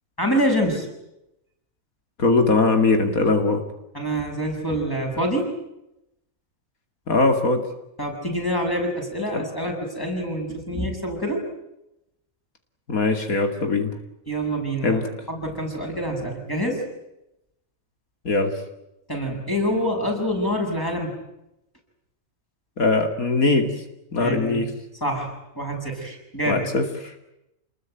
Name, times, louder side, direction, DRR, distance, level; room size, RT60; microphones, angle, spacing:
voice 1, 0.2-0.9 3.9-5.5 8.0-11.4 14.3-15.0 15.3-16.8 19.1-21.2 24.2-24.6 25.0-26.7, equal, 15° left, 1 dB, 7.2 m, -26 dB
voice 2, 2.2-3.6 7.1-7.6 12.9-13.9 14.8-15.0 18.2-18.5 22.8-23.7 24.1-24.7 26.5-27.3, left 3 dB, 90° left, 6 dB, 3.0 m, -21 dB
28.5 x 21.0 x 9.2 m, 0.87 s
omnidirectional pair, 1.4 m